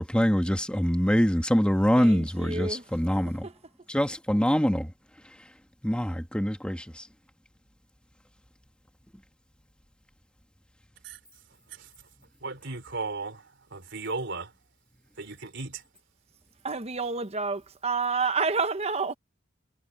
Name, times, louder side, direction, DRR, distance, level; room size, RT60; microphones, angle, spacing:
voice 1, 0.0-3.5 3.9-4.9 5.8-7.1, equal, 5° left, 1.8 m, -24 dB
voice 2, 1.9-2.8 3.4-3.5 16.6-19.1, right 4 dB, 30° right, 1.0 m, -29 dB
voice 3, 12.4-14.5 15.2-15.8, right 3 dB, 60° right, 3.9 m, -36 dB
head